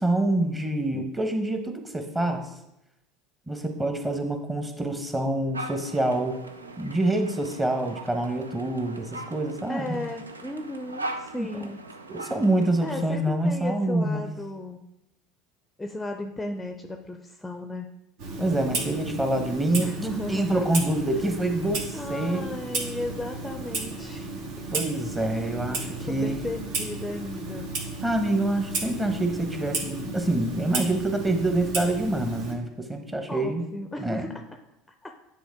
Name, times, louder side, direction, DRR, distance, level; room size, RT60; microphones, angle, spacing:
voice 1, 0.0-2.4 3.5-6.4 6.8-10.0 11.3-11.5 12.1-14.2 18.4-19.9 20.3-22.5 24.7-26.4 28.0-33.7 34.0-34.3, right 1 dB, 15° right, 5 dB, 1.2 m, -26 dB
sound 1, 5.5-13.1, right 2 dB, 90° right, 0.4 m, -40 dB
voice 2, 9.7-11.8 12.8-14.8 15.8-17.9 19.8-20.5 21.9-24.3 25.2-25.5 26.0-27.7 33.3-34.3 34.9-35.1, left 1 dB, 10° left, 4 dB, 0.6 m, -35 dB
Clock, 18.2-32.5, right 3 dB, 60° right, 1.3 m, -34 dB
9.5 x 3.7 x 3.6 m, 0.88 s
figure-of-eight pair, 75°, 0 cm